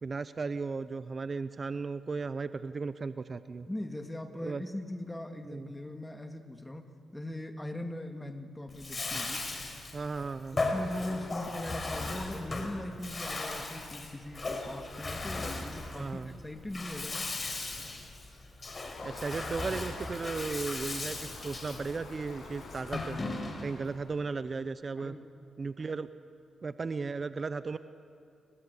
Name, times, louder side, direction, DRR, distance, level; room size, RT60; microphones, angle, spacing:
voice 1, 0.0-3.7 4.4-4.6 5.5-5.7 9.9-10.6 15.9-16.4 19.0-23.2 23.6-25.1 25.6-26.1 26.6-27.8, right 4 dB, 40° right, 13 dB, 0.8 m, -35 dB
voice 2, 3.7-9.5 10.5-17.3 25.0-25.3, left 1 dB, 10° left, 6 dB, 2.6 m, -40 dB
Bathtub (filling or washing), 8.7-23.8, left 2 dB, 35° left, 4.4 m, -37 dB
Waves surf, 18.9-24.0, left 3 dB, 75° left, 7.2 m, -47 dB
29.5 x 23.0 x 8.4 m, 2.7 s
cardioid pair, 70°, 0 cm